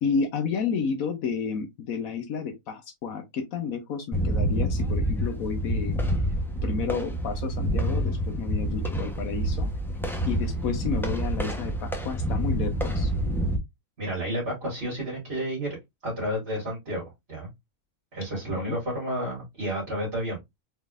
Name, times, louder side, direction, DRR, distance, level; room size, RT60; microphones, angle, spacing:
voice 1, 0.0-6.0 6.6-9.7 10.3-13.1 18.3-18.8, left 5 dB, 70° left, 1.1 m, -31 dB
sound 1, 4.1-13.6, right 1 dB, 5° left, 0.4 m, -27 dB
voice 2, 14.0-15.7 16.0-17.5 18.1-20.4, equal, 45° right, 2.5 m, -31 dB
4.3 x 3.6 x 2.4 m
omnidirectional pair, 1.6 m